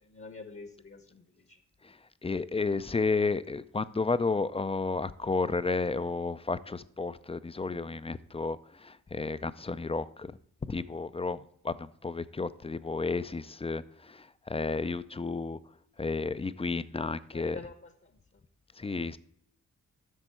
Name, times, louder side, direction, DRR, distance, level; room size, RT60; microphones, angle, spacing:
voice 1, 0.0-1.6 17.3-18.4, left 4 dB, 40° left, 9 dB, 0.9 m, -47 dB
voice 2, 2.2-10.3 10.7-15.6 16.0-17.6 18.8-19.2, left 4 dB, 20° left, 15 dB, 0.4 m, -32 dB
8.1 x 6.0 x 4.4 m, 0.66 s
supercardioid pair, 45°, 33 cm